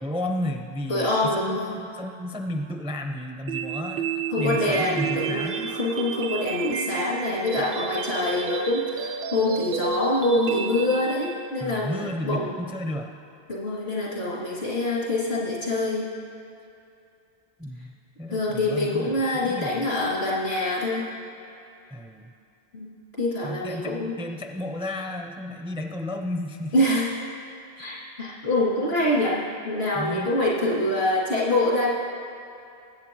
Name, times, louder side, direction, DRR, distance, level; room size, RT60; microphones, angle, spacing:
voice 1, 0.0-5.7 11.6-13.1 17.6-19.1 19.4-19.7 21.9-22.3 23.4-26.8 29.9-30.3, left 1 dB, 5° right, 4 dB, 0.4 m, -32 dB
voice 2, 0.9-1.8 4.3-12.5 13.5-16.1 18.3-21.0 22.7-22.9 23.2-24.1 26.7-27.1 27.8-31.9, left 1 dB, 80° left, -6 dB, 2.8 m, -25 dB
sound 1, 3.5-11.5, right 7 dB, 65° right, 0.7 m, -31 dB
19.5 x 8.5 x 3.0 m, 2.6 s
omnidirectional pair, 1.1 m